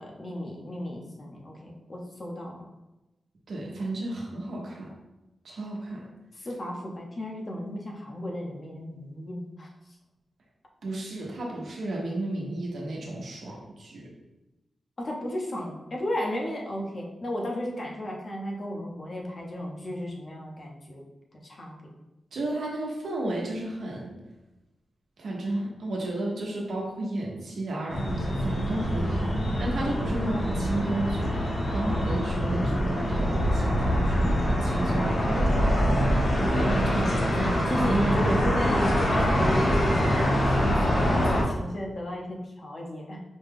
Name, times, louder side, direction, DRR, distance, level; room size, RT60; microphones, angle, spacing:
voice 1, 0.0-2.6 6.4-9.7 15.0-21.0 21.4-21.8 36.6-43.2, equal, 40° left, -1 dB, 0.7 m, -34 dB
voice 2, 3.5-4.9 5.4-6.0 10.8-14.0 22.3-24.1 25.2-37.1 37.7-38.4 41.2-41.3, right 2 dB, 70° right, -2 dB, 1.0 m, -32 dB
sound 1, 27.9-41.4, equal, 55° left, 1.1 m, -25 dB
5.1 x 2.3 x 3.4 m, 0.99 s
wide cardioid pair, 130°, 0 cm